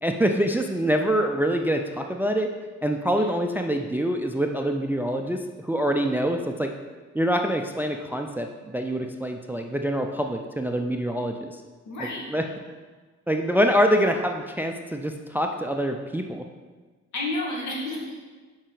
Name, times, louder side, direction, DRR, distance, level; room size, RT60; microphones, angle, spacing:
voice 1, 0.0-2.5 2.8-6.7 7.1-8.5 8.7-11.6 12.0-12.4 13.3-16.4, equal, 5° right, 4 dB, 0.4 m, -25 dB
voice 2, 11.9-12.3 17.1-18.2, left 2 dB, 70° left, -2 dB, 1.8 m, -31 dB
6.2 x 5.0 x 3.9 m, 1.4 s
cardioid pair, 90°, 30 cm